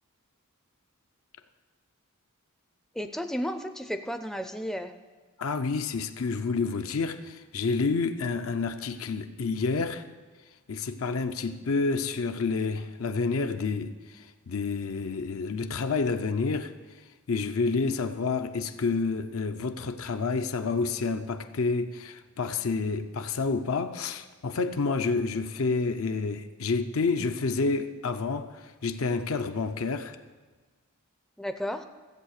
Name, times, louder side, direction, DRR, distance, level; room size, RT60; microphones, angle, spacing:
voice 1, 3.0-4.9 31.4-31.8, equal, ahead, 0.4 m, -33 dB
voice 2, 5.4-10.1 10.7-30.2, left 4 dB, 70° left, 0.6 m, -29 dB
14.5 x 8.1 x 6.5 m
head